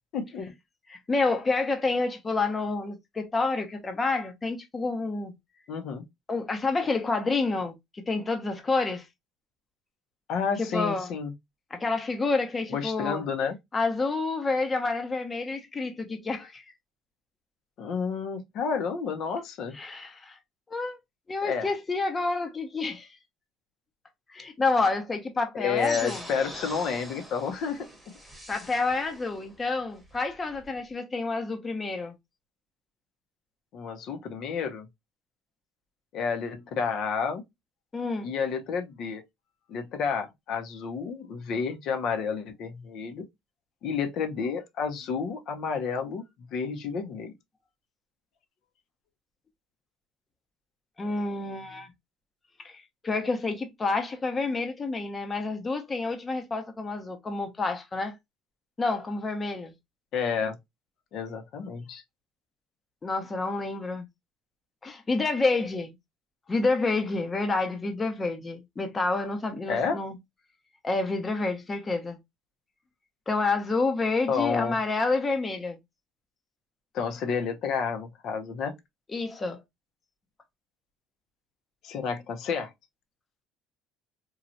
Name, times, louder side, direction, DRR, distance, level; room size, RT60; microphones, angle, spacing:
voice 1, 0.1-0.5 5.7-6.0 10.3-11.3 12.7-13.6 17.8-19.8 21.4-21.7 25.5-27.9 33.7-34.9 36.1-37.5 38.2-39.2 39.7-43.2 43.8-46.2 46.5-47.3 60.1-60.6 61.1-62.0 69.7-70.0 74.3-74.8 76.9-78.7 81.8-82.7, left 6 dB, 65° left, 0.7 m, -30 dB
voice 2, 0.9-5.3 6.3-9.1 10.6-11.1 11.7-13.2 13.7-16.6 19.7-20.4 20.7-21.0 21.3-23.1 24.3-26.2 28.5-32.1 37.9-38.3 51.0-51.9 52.6-58.1 58.8-59.7 63.0-64.1 64.8-65.9 66.5-70.2 70.8-72.2 73.3-75.8 79.1-79.6, left 3 dB, 25° left, 0.8 m, -28 dB
sound 1, 25.8-30.8, equal, 10° right, 1.0 m, -43 dB
3.0 x 2.3 x 2.5 m
supercardioid pair, 95°, 0 cm